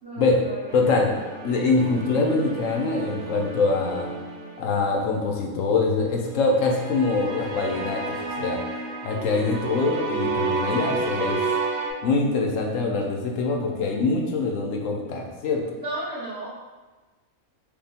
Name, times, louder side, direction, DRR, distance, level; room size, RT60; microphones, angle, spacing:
voice 1, 0.0-1.1 15.8-16.5, right 1 dB, 45° right, -12 dB, 1.9 m, -34 dB
voice 2, 0.7-1.1 1.4-4.1 4.6-8.6 9.0-11.4 12.0-15.6, left 3 dB, 70° left, 1 dB, 1.0 m, -24 dB
sound 1, 0.7-5.0 6.5-11.9, right 3 dB, 65° right, 0.8 m, -31 dB
4.9 x 2.3 x 3.4 m, 1.2 s
omnidirectional pair, 1.4 m